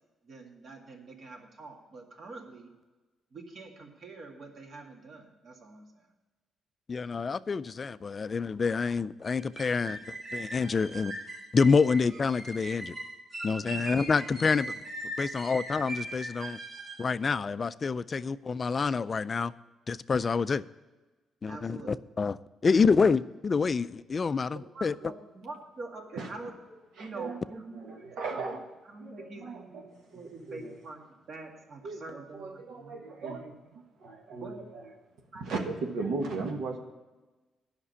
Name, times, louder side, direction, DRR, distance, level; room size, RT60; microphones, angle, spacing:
voice 1, 0.2-2.7 3.3-6.0 13.7-13.9 21.5-21.9 24.5-27.7 28.2-28.6 28.9-29.9 30.1-31.0 31.3-33.5 34.3-34.7 35.3-35.6, right 3 dB, 50° right, 2 dB, 1.9 m, -45 dB
voice 2, 6.9-11.1 11.5-12.9 13.4-14.8 15.2-16.6 17.0-19.5 19.9-20.6 21.4-22.4 22.6-24.9, left 5 dB, 35° left, 16 dB, 0.3 m, -27 dB
sound 1, 9.3-17.1, right 1 dB, 30° right, 1.6 m, -40 dB
voice 3, 27.0-27.4 27.7-28.6 29.0-30.8 31.8-33.5 33.7-34.8 35.4-36.8, right 3 dB, 75° right, 2 dB, 1.4 m, -37 dB
9.9 x 5.9 x 8.2 m, 1.2 s
cardioid pair, 115°, 0 cm